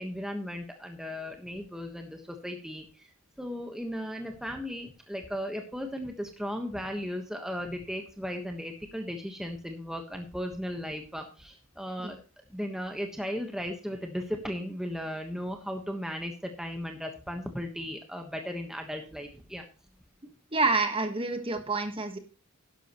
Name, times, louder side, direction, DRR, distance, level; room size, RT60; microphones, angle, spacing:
voice 1, 0.0-3.1 3.4-12.2 12.5-19.6, equal, ahead, 3 dB, 1.2 m, -36 dB
voice 2, 20.2-22.2, right 3 dB, 25° right, 6 dB, 1.4 m, -28 dB
12.0 x 11.0 x 3.1 m, 0.35 s
head